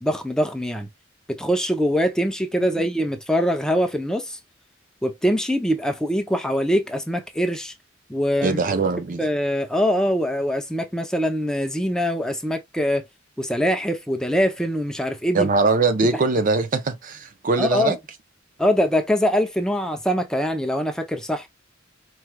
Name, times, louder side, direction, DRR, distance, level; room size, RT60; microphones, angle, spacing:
voice 1, 0.0-0.9 1.3-4.4 5.0-7.7 8.1-8.6 9.2-13.0 13.4-15.5 17.6-18.0 18.6-21.5, equal, 5° left, 0.5 m, -23 dB
voice 2, 8.4-9.3 15.3-18.0, right 3 dB, 45° right, 0.5 m, -21 dB
4.6 x 3.1 x 2.2 m
head